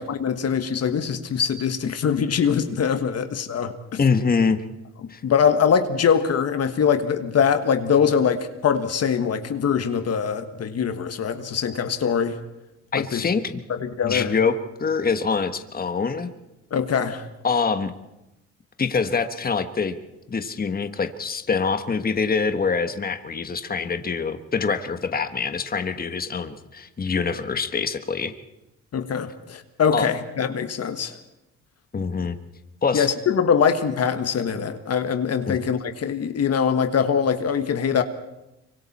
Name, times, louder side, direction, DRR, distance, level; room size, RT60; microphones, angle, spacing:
voice 1, 0.0-4.0 5.2-12.4 12.9-13.2 13.7-14.3 16.7-17.2 28.9-31.2 32.9-38.0, left 7 dB, 55° left, 8 dB, 1.5 m, -23 dB
voice 2, 4.0-4.6 5.1-5.2 12.9-13.6 14.0-16.3 17.4-17.9 18.8-20.0 20.3-28.3 29.9-30.1 31.9-32.4 32.8-33.1 35.5-35.6, left 5 dB, 30° left, 8 dB, 1.3 m, -24 dB
25.5 x 24.0 x 4.3 m, 0.92 s
cardioid pair, 90°, 30 cm